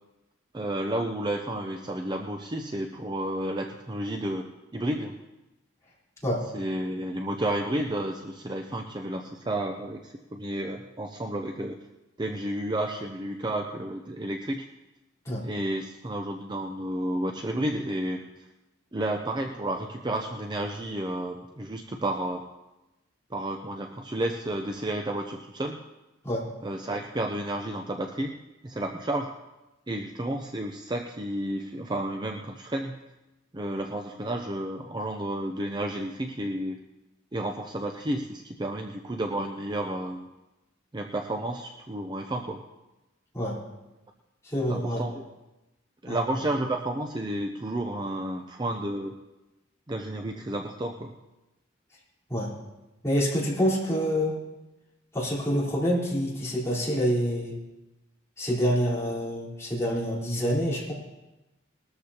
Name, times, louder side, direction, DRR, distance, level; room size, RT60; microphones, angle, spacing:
voice 1, 0.5-5.2 6.5-11.8 12.2-14.7 15.4-18.3 18.9-22.5 23.3-25.8 26.6-29.3 29.9-33.0 33.5-36.8 37.3-40.3 40.9-42.6 44.7-45.2 46.0-49.1 49.9-51.2, right 1 dB, 25° right, 3 dB, 0.6 m, -31 dB
voice 2, 44.4-45.0 46.1-46.2 52.3-52.5 53.0-54.4 55.1-57.5 58.4-60.9, equal, 15° left, -7 dB, 4.0 m, -27 dB
20.0 x 13.0 x 2.9 m, 1.0 s
head